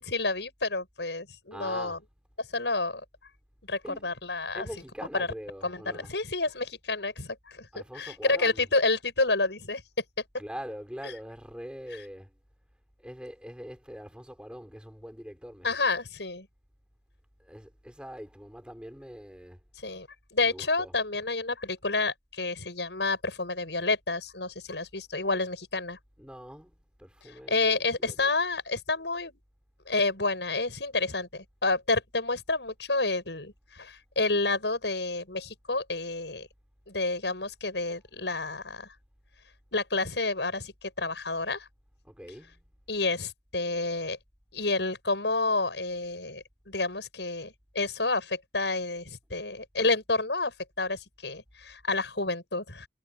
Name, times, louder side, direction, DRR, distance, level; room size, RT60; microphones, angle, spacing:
voice 1, 0.0-2.0 2.4-3.0 3.7-4.7 5.1-5.3 5.6-7.7 8.0-9.8 15.6-16.5 19.8-26.0 27.3-29.3 29.9-36.5 36.9-38.9 39.7-41.7 42.9-44.2 44.5-52.9, left 3 dB, 75° left, 6.8 m, -29 dB
voice 2, 1.5-2.0 3.8-4.2 4.5-6.2 7.7-8.7 10.4-12.3 13.0-15.9 17.4-19.6 20.4-21.0 26.2-28.3 37.8-37.9 42.0-42.6, equal, 5° right, 6.1 m, -43 dB
head